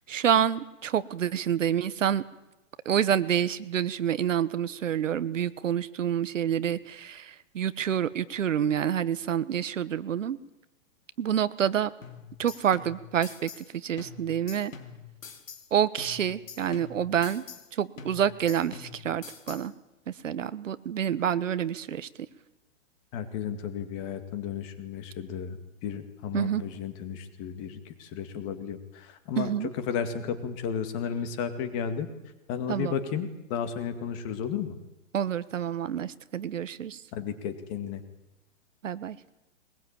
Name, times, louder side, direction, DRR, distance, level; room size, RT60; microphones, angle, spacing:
voice 1, 0.1-2.2 2.8-10.4 11.2-11.9 12.4-14.7 15.7-17.4 17.7-19.7 20.1-22.1 26.3-26.6 29.4-29.7 32.7-33.0 35.1-37.0 38.8-39.2, right 9 dB, 75° right, 15 dB, 1.3 m, -28 dB
sound 1, 12.0-13.7 14.0-15.7 16.0-17.7 18.0-19.7, left 6 dB, 85° left, 3.1 m, -45 dB
voice 2, 23.1-29.5 29.9-32.1 32.5-34.7 37.1-38.0, left 7 dB, 25° left, 10 dB, 2.1 m, -33 dB
22.0 x 21.0 x 8.9 m, 0.95 s
hypercardioid pair, 160°, 38 cm